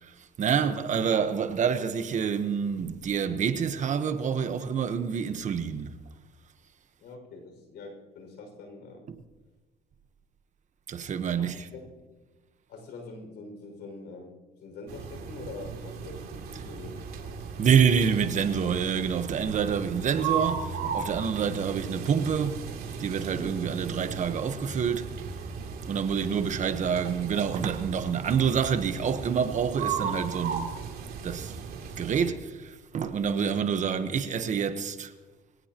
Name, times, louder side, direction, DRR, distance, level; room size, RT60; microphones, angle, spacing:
voice 1, 0.0-6.0 9.1-9.2 10.9-11.7 17.6-22.6 23.0-25.2 25.9-30.8 31.2-31.5 32.0-35.1, right 7 dB, 45° right, 1.2 m, -27 dB
voice 2, 7.0-9.1 11.3-11.9 12.7-17.4, left 3 dB, 75° left, 6.0 m, -44 dB
sound 1, 14.9-32.3, right 6 dB, 65° right, 2.9 m, -36 dB
24.0 x 17.5 x 3.0 m
cardioid pair, 110°, 17 cm